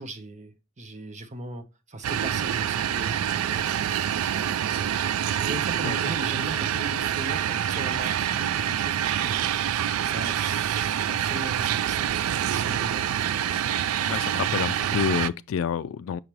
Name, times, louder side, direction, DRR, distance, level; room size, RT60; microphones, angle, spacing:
voice 1, 0.0-3.8 4.3-4.7 5.3-13.3, right 1 dB, 35° right, 0.8 m, -39 dB
sound 1, 2.0-15.3, right 10 dB, 90° right, 0.3 m, -26 dB
voice 2, 14.1-16.2, left 7 dB, 70° left, 0.3 m, -28 dB
6.2 x 5.1 x 3.0 m
head